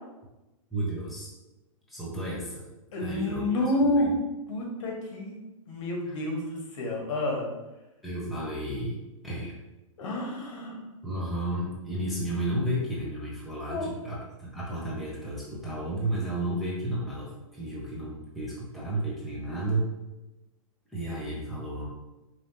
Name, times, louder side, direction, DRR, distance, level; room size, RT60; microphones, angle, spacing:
voice 1, 0.7-1.3 1.9-2.7 3.0-3.6 4.0-4.1 6.1-6.2 8.0-9.6 11.0-19.9 20.9-21.8, right 1 dB, ahead, -7 dB, 0.8 m, -32 dB
voice 2, 2.9-4.1 4.5-5.4 5.7-7.5 10.0-10.8 13.7-13.8, left 1 dB, 60° left, -1 dB, 1.4 m, -29 dB
5.0 x 2.9 x 2.7 m, 1.0 s
hypercardioid pair, 145°, 18 cm